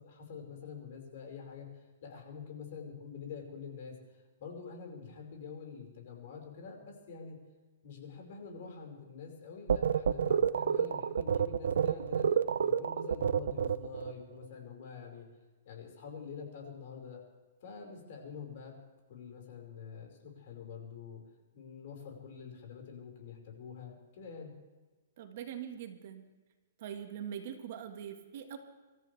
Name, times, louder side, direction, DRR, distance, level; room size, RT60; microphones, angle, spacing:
voice 1, 0.0-3.9 4.4-7.4 7.8-12.3 12.6-15.3 15.6-17.2 17.6-18.7 19.1-21.2 21.5-24.5, left 6 dB, 45° left, 1 dB, 5.1 m, -46 dB
sound 1, 9.7-14.1, right 7 dB, 75° right, 0.7 m, -29 dB
voice 2, 25.2-26.3 26.8-28.6, right 9 dB, 45° right, 5 dB, 1.7 m, -42 dB
26.0 x 14.0 x 3.4 m, 1.2 s
hypercardioid pair, 165°, 0 cm